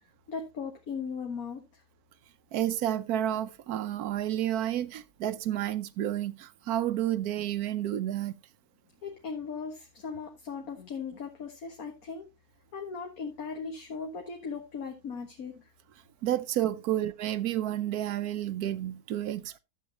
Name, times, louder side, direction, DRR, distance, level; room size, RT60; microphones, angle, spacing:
voice 1, 0.3-1.8 9.0-12.3 12.7-15.6, left 5 dB, 65° left, 1.8 m, -38 dB
voice 2, 2.5-8.3 16.2-19.6, right 12 dB, 75° right, 1.2 m, -30 dB
12.0 x 7.9 x 2.9 m
omnidirectional pair, 1.7 m